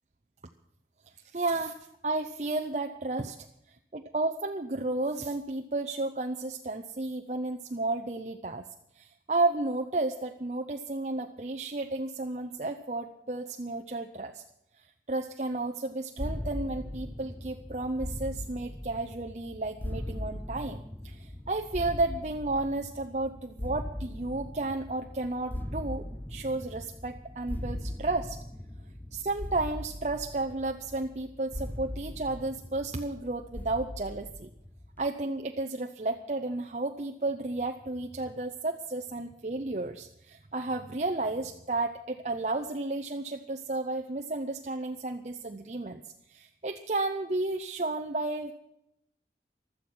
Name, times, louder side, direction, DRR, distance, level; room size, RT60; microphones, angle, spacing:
voice 1, 1.3-1.8 2.0-3.4 3.9-8.6 9.0-14.4 15.1-26.0 26.3-28.4 29.1-34.5 35.0-46.0 46.3-48.5, right 2 dB, 40° right, 5 dB, 0.7 m, -32 dB
sound 1, 16.2-35.1, left 1 dB, 10° left, 0.7 m, -40 dB
15.5 x 12.5 x 6.2 m, 0.80 s
head